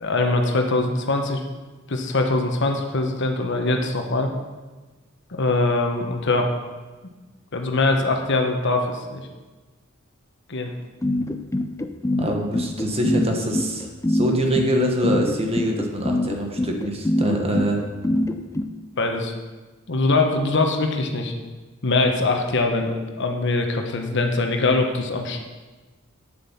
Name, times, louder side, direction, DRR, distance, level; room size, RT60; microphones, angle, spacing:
voice 1, 0.0-1.4 1.9-4.3 5.3-6.5 7.5-9.3 10.5-10.7 19.0-19.3 19.9-21.3 21.8-25.4, left 2 dB, 60° left, 3 dB, 1.1 m, -22 dB
sound 1, 11.0-18.7, left 1 dB, 15° left, 0.5 m, -23 dB
voice 2, 12.2-17.8, right 1 dB, 30° right, 2 dB, 1.3 m, -24 dB
9.0 x 7.2 x 5.7 m, 1.3 s
head